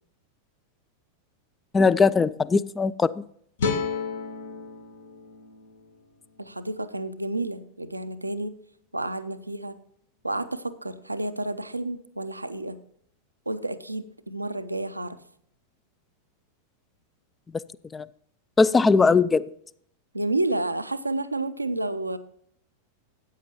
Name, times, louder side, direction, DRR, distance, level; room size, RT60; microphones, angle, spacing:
voice 1, 1.7-3.2 17.9-18.1 18.6-19.4, left 4 dB, 15° left, 19 dB, 0.3 m, -20 dB
sound 1, 3.6-6.8, left 5 dB, 60° left, 1.0 m, -32 dB
voice 2, 6.4-8.5 8.9-9.8 10.2-12.8 13.5-15.2 20.1-22.2, right 2 dB, 85° right, 11 dB, 0.5 m, -30 dB
14.0 x 8.8 x 3.0 m, 0.67 s
figure-of-eight pair, 90°, 0 cm